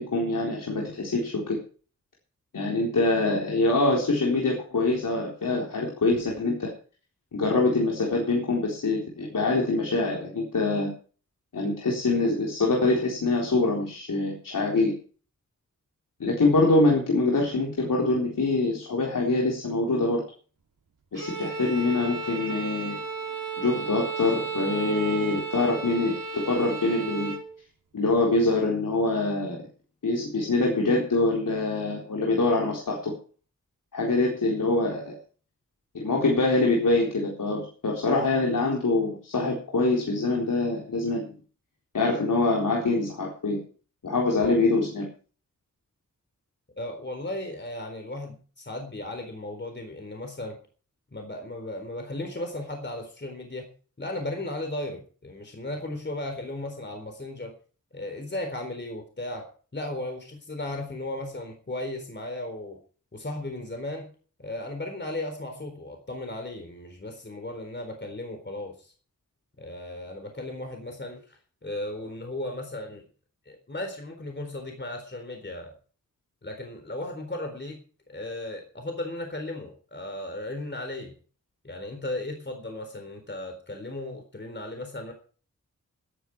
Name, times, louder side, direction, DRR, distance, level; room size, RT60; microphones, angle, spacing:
voice 1, 0.0-1.6 2.5-6.7 7.3-10.9 11.5-14.9 16.2-20.2 21.1-23.0 23.6-27.3 27.9-29.6 30.0-33.1 33.9-35.2 35.9-41.3 41.9-43.6 44.0-45.1, left 2 dB, 85° left, -1 dB, 4.1 m, -24 dB
Bowed string instrument, 21.1-27.5, right 4 dB, 90° right, 3.2 m, -34 dB
voice 2, 46.8-50.6 51.1-53.7 54.0-57.5 57.9-62.8 63.1-64.1 64.4-68.9 69.6-73.1 73.5-75.7 76.4-77.8 78.1-81.1 81.6-85.1, left 1 dB, 35° left, 4 dB, 4.0 m, -36 dB
17.0 x 10.5 x 4.8 m, 0.40 s
wide cardioid pair, 105°, 31 cm